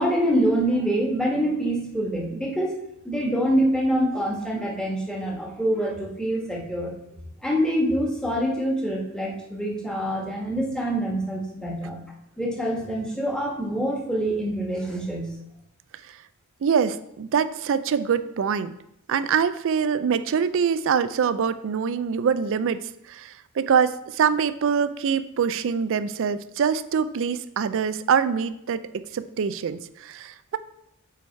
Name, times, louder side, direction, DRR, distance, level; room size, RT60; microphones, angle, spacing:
voice 1, 0.0-2.7 3.0-6.9 7.4-12.0 12.4-15.3, equal, 5° left, -2 dB, 1.4 m, -25 dB
voice 2, 16.6-18.7 19.1-30.6, right 7 dB, 60° right, 13 dB, 0.4 m, -24 dB
6.9 x 4.7 x 4.5 m, 0.79 s
head